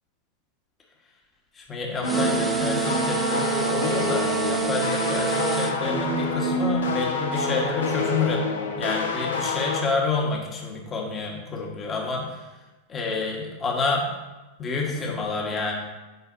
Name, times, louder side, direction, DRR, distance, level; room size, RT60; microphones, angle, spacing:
voice 1, 1.5-8.4 8.8-12.4 12.9-14.0 14.6-15.7, left 4 dB, 20° left, -1 dB, 1.6 m, -28 dB
sound 1, 2.0-9.8, left 2 dB, 65° left, 1.0 m, -27 dB
sound 2, 2.0-5.8, right 6 dB, 5° right, 0.7 m, -27 dB
8.1 x 5.6 x 2.7 m, 1.1 s
figure-of-eight pair, 90°, 0 cm